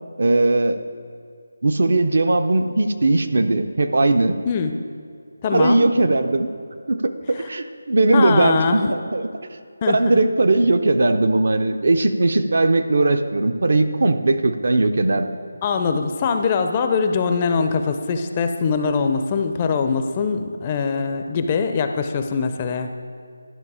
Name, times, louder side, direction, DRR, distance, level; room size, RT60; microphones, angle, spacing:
voice 1, 0.2-0.8 1.6-4.4 5.5-6.5 6.9-9.3 9.9-15.3, right 2 dB, 65° right, 9 dB, 0.6 m, -19 dB
voice 2, 5.4-5.8 8.1-8.9 9.8-10.2 15.6-22.9, left 5 dB, 25° left, 6 dB, 0.4 m, -22 dB
11.0 x 5.4 x 4.8 m, 2.3 s
figure-of-eight pair, 165°, 0 cm